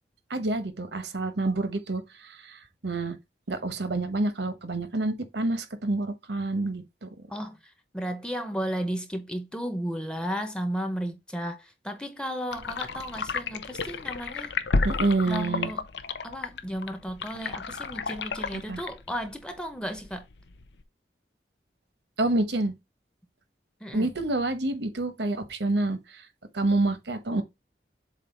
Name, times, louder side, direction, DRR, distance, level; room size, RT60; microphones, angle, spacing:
voice 1, 0.3-3.2 3.5-7.1 14.8-15.7 18.5-18.8 22.2-22.7 23.9-26.2 26.5-27.4, right 2 dB, 80° right, 1.1 m, -28 dB
voice 2, 7.9-14.5 15.3-15.8 16.2-20.3 23.8-24.1, equal, 5° left, 0.8 m, -34 dB
sound 1, 12.5-20.8, left 4 dB, 80° left, 0.7 m, -32 dB
7.6 x 2.5 x 5.2 m
head